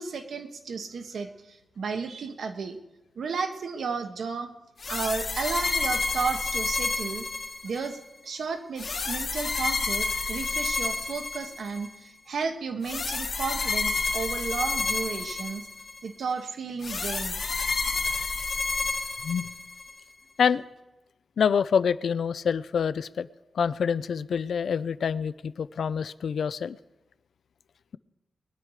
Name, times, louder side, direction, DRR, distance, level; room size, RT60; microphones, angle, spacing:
voice 1, 0.0-2.8 3.1-4.5 4.9-7.2 7.6-15.7 16.0-17.4, right 5 dB, 80° right, 5 dB, 1.4 m, -33 dB
sound 1, 4.8-8.0 8.8-11.9 12.8-16.0 16.8-19.9, left 3 dB, 50° left, 1.3 m, -30 dB
voice 2, 19.2-19.6 20.4-20.6 21.4-23.3 23.5-26.8, left 7 dB, 75° left, 16 dB, 0.5 m, -26 dB
21.5 x 10.5 x 4.9 m, 1.0 s
wide cardioid pair, 140°, 0 cm